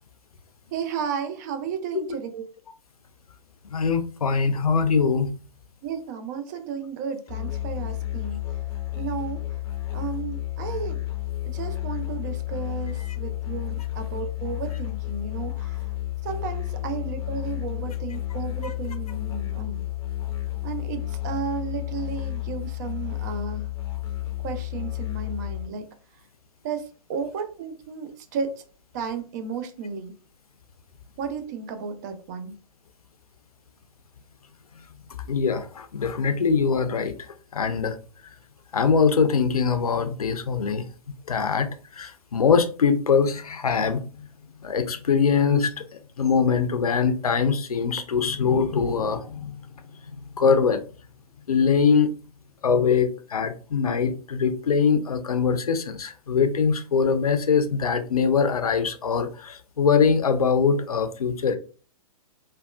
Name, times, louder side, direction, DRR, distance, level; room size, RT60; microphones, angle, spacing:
voice 1, 0.7-2.4 5.8-8.4 8.9-9.4 9.9-11.0 11.4-15.8 16.2-19.8 20.6-23.7 24.4-25.9 26.6-28.6 28.9-30.2 31.2-32.6, right 6 dB, 30° right, 0.3 m, -33 dB
voice 2, 3.7-5.3 35.3-37.1 37.5-37.9 38.7-40.8 41.3-41.7 42.0-44.1 44.6-45.8 46.2-49.6 50.4-50.8 51.5-52.1 52.6-61.6, left 6 dB, 75° left, 0.5 m, -22 dB
Musical instrument, 7.3-25.7, left 15 dB, 20° left, 0.5 m, -31 dB
3.4 x 2.2 x 2.3 m
figure-of-eight pair, 115°, 19 cm